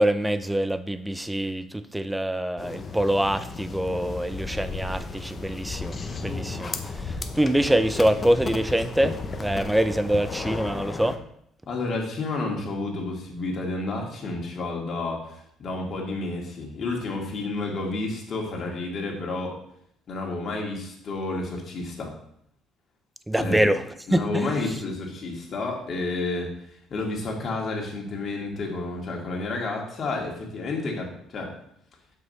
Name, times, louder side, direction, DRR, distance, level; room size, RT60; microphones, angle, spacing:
voice 1, 0.0-6.0 6.2-6.7 7.1-11.2 23.3-23.8 24.1-24.5, right 1 dB, 10° right, 12 dB, 0.6 m, -24 dB
sound 1, 2.6-11.2, left 3 dB, 35° left, 0.9 m, -34 dB
voice 2, 11.7-19.6 20.1-22.1 23.4-23.7 24.1-31.6, left 3 dB, 50° left, 0 dB, 2.2 m, -30 dB
6.0 x 5.6 x 4.2 m, 0.71 s
supercardioid pair, 75°, 0 cm